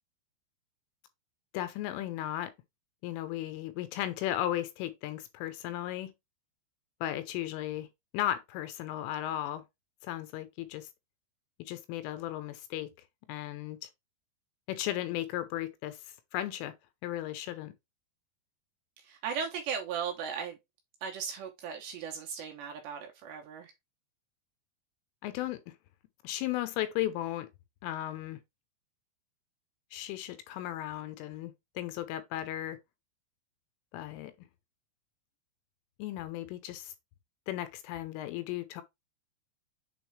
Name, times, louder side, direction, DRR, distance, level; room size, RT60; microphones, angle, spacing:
voice 1, 1.5-2.5 3.0-6.1 7.0-7.9 8.1-9.6 10.0-10.9 11.6-12.9 13.3-13.9 14.7-16.0 16.3-16.7 17.0-17.7 25.2-25.7 26.2-27.5 27.8-28.4 29.9-32.8 33.9-34.3 36.0-36.9 37.5-38.8, left 13 dB, 80° left, 3.3 m, -35 dB
voice 2, 19.0-20.6 21.0-23.7, right 7 dB, 75° right, 2.7 m, -37 dB
8.2 x 3.7 x 3.2 m
omnidirectional pair, 5.8 m